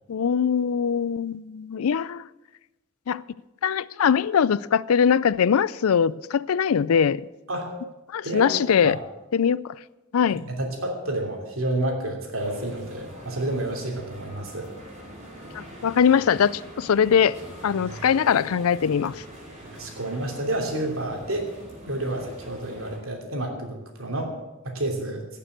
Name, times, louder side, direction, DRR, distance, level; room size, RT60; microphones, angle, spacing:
voice 1, 0.1-2.2 3.1-3.2 3.6-7.2 8.1-9.0 9.3-9.7 10.1-10.4 15.5-17.4 17.6-19.2, left 7 dB, 85° left, 0.4 m, -22 dB
voice 2, 8.2-9.0 10.6-14.7 19.8-21.5 21.9-24.3 24.6-25.3, right 1 dB, 75° right, 3.0 m, -29 dB
sound 1, 12.4-23.0, right 1 dB, 30° right, 4.6 m, -43 dB
16.0 x 6.9 x 8.0 m
head